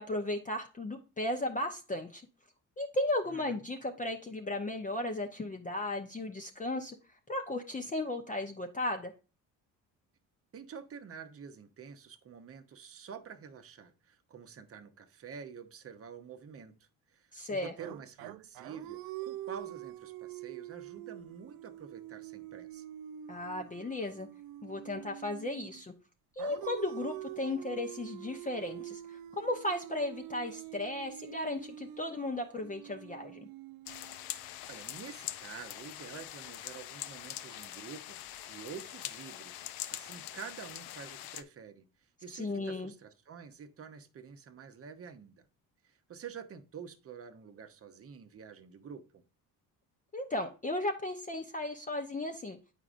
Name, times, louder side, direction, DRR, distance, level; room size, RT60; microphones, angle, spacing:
voice 1, 0.0-2.2 2.8-7.0 7.3-9.1 17.3-17.7 23.3-24.3 24.6-25.9 26.4-33.4 42.3-42.9 50.1-52.6, left 1 dB, 20° left, 4 dB, 0.6 m, -35 dB
voice 2, 3.3-3.6 10.5-22.8 34.7-39.7 39.9-41.8 42.2-45.5 45.8-49.2, right 6 dB, 35° right, 9 dB, 0.8 m, -48 dB
sound 1, 17.8-25.8 26.4-34.5, right 14 dB, 65° right, 0.5 m, -45 dB
sound 2, 33.9-41.4, left 13 dB, 80° left, 0.5 m, -43 dB
8.3 x 4.9 x 2.5 m, 0.33 s
supercardioid pair, 65°, 40 cm